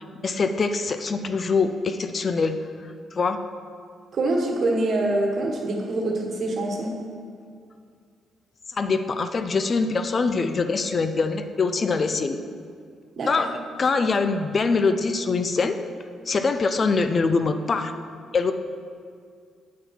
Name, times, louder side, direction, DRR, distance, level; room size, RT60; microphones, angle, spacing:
voice 1, 0.0-2.6 3.1-3.4 8.7-12.4 13.3-13.5 13.8-15.7 16.3-17.9 18.3-18.5, left 4 dB, 40° left, 9 dB, 0.4 m, -23 dB
voice 2, 4.1-6.9 13.2-13.3, right 2 dB, 55° right, 0 dB, 1.3 m, -25 dB
8.4 x 4.3 x 5.5 m, 2.2 s
cardioid pair, 90°, 0 cm